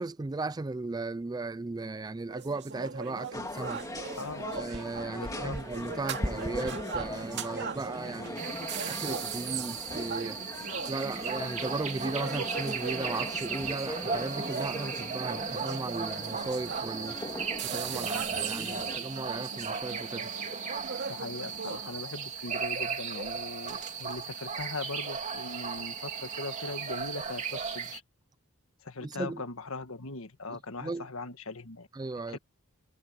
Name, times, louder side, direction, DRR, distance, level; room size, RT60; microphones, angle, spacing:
voice 1, 0.0-3.8 4.5-8.4 8.9-10.4 10.9-17.2 17.7-20.3 29.0-29.4 30.8-31.1 31.9-32.4, right 3 dB, 20° right, 0.3 m, -36 dB
sound 1, 2.2-21.9, right 5 dB, 50° right, 2.3 m, -40 dB
sound 2, 3.3-19.0, left 1 dB, 15° left, 2.1 m, -40 dB
voice 2, 5.1-5.6 21.1-28.0 28.8-31.9 32.3-32.4, left 3 dB, 65° left, 1.6 m, -40 dB
sound 3, 8.4-28.0, right 6 dB, 35° right, 2.8 m, -36 dB
head